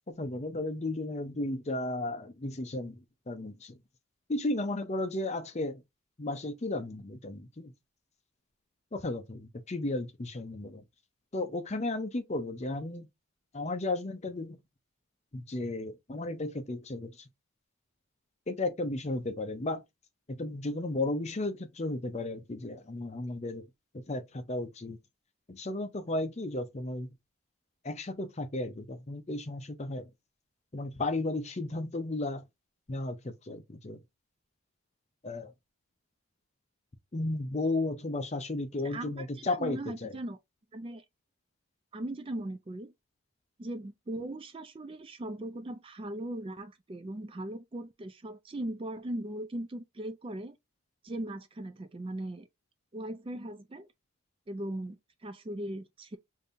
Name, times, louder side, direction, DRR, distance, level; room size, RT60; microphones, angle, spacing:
voice 1, 0.1-3.0 3.3-3.8 4.3-5.8 6.2-7.7 8.9-10.8 11.3-13.1 13.5-14.6 15.3-17.3 18.5-19.8 20.3-23.6 24.1-25.0 25.5-27.1 27.8-30.1 30.7-32.4 32.9-34.0 35.2-35.5 37.1-40.2, left 2 dB, 30° left, 0.5 m, -34 dB
voice 2, 38.8-40.4 40.7-41.0 41.9-42.9 43.6-50.6 51.0-52.5 52.9-53.9 54.5-56.2, right 1 dB, 25° right, 0.4 m, -39 dB
5.2 x 2.7 x 2.5 m
head